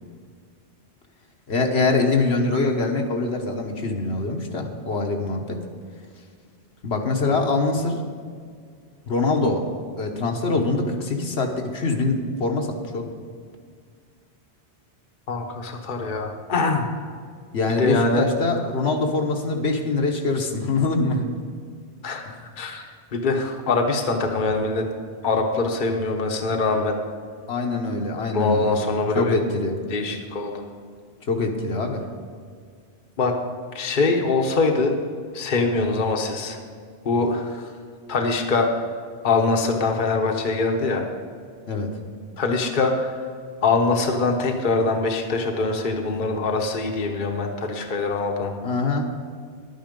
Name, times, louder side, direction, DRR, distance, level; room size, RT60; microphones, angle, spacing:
voice 1, 1.5-5.6 6.8-8.0 9.1-9.7 10.0-13.1 17.5-21.3 22.2-22.4 27.5-28.8 29.1-29.8 31.3-32.0 41.7-41.9 48.6-49.1, left 3 dB, 70° left, 2 dB, 1.3 m, -24 dB
voice 2, 15.3-16.9 17.8-18.2 22.0-22.3 22.6-24.9 25.2-27.0 28.3-29.4 29.9-30.6 33.2-33.3 33.7-35.0 35.3-36.6 37.0-37.6 38.1-38.9 39.2-41.1 42.4-43.2 43.6-48.5, left 3 dB, 50° left, 3 dB, 1.1 m, -23 dB
11.5 x 9.4 x 5.2 m, 2.1 s
omnidirectional pair, 1.1 m